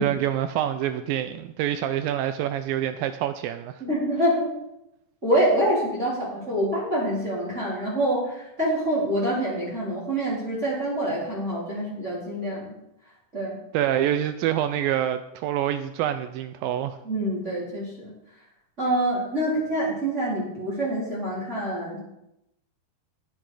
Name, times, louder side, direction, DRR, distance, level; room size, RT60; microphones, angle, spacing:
voice 1, 0.0-3.8 13.7-17.0, right 11 dB, 85° right, 10 dB, 2.1 m, -26 dB
voice 2, 3.8-4.5 5.2-12.8 13.3-13.6 17.0-18.1 18.8-22.0, right 1 dB, 20° right, -6 dB, 3.6 m, -26 dB
18.0 x 6.4 x 4.8 m, 0.85 s
omnidirectional pair, 4.5 m